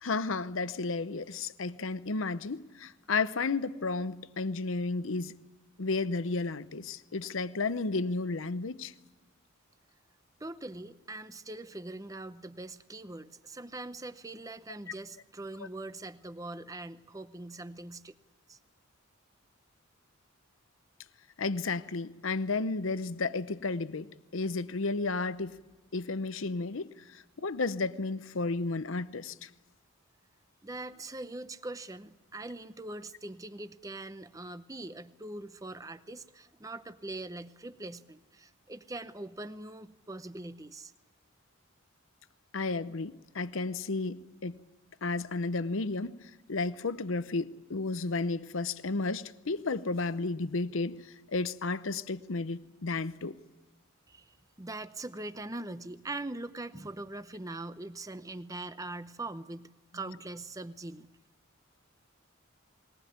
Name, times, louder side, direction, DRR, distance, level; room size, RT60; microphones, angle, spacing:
voice 1, 0.0-5.4 5.8-8.9 21.4-25.6 25.9-29.5 42.5-44.6 45.0-51.0 51.3-53.4, left 3 dB, 70° left, 0.8 m, -33 dB
voice 2, 10.4-18.1 18.5-18.6 30.6-40.9 54.1-61.1, right 2 dB, 15° right, 0.7 m, -42 dB
21.0 x 19.0 x 9.4 m
head